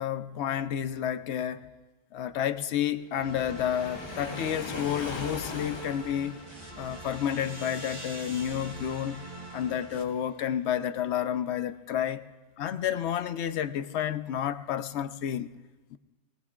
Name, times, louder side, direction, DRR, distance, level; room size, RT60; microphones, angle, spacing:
voice 1, 0.0-1.7 2.1-6.4 6.8-12.3 12.6-15.5 15.9-16.0, left 10 dB, 75° left, 0.9 m, -30 dB
Waves surf, 3.1-6.6, left 3 dB, 30° left, 0.7 m, -39 dB
sound 1, 3.2-10.0, right 2 dB, 45° right, 1.5 m, -45 dB
sound 2, 5.3-10.7, right 1 dB, 20° right, 1.7 m, -49 dB
24.0 x 19.0 x 2.4 m
omnidirectional pair, 1.2 m